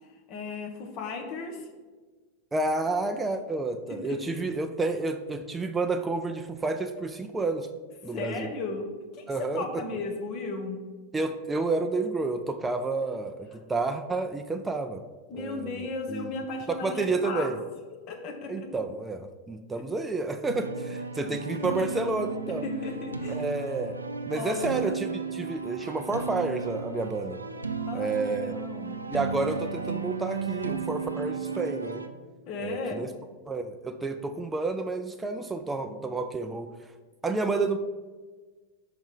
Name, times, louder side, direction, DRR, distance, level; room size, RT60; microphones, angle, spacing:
voice 1, 0.3-1.6 3.9-4.4 8.1-10.8 15.3-17.5 18.1-18.7 21.3-21.4 22.6-23.5 24.3-24.7 27.9-29.0 32.5-33.1, left 3 dB, 40° left, 3 dB, 1.2 m, -35 dB
voice 2, 2.5-7.7 8.0-8.5 9.3-9.8 11.1-15.0 15.3-16.3 16.7-17.6 18.5-22.6 23.3-27.4 27.9-28.5 29.1-32.0 32.6-33.1 33.5-36.7 37.2-37.8, right 3 dB, 10° right, 7 dB, 0.4 m, -30 dB
sound 1, 20.5-32.1, right 5 dB, 80° right, 0.4 m, -34 dB
5.4 x 5.0 x 5.0 m, 1.3 s
figure-of-eight pair, 90°, 0 cm